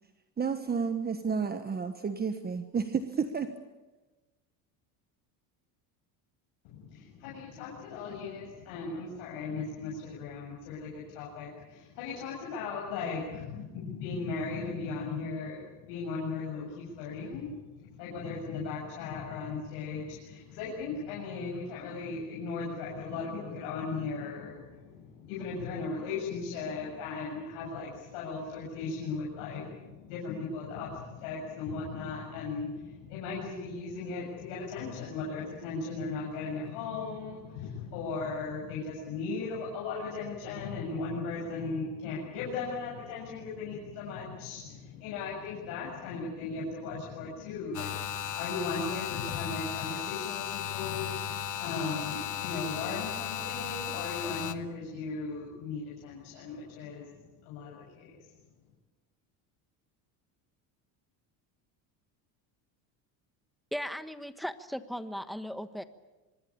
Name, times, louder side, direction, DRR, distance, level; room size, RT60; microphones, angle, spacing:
voice 1, 0.4-3.5, right 6 dB, 20° right, 8 dB, 1.4 m, -31 dB
voice 2, 6.6-58.3, left 4 dB, 80° left, -4 dB, 7.4 m, -37 dB
sound 1, 47.7-54.5, left 10 dB, 45° left, 1.5 m, -35 dB
voice 3, 63.7-65.8, equal, ahead, 10 dB, 1.3 m, -37 dB
25.0 x 21.5 x 8.8 m, 1.1 s
cardioid pair, 125°, 42 cm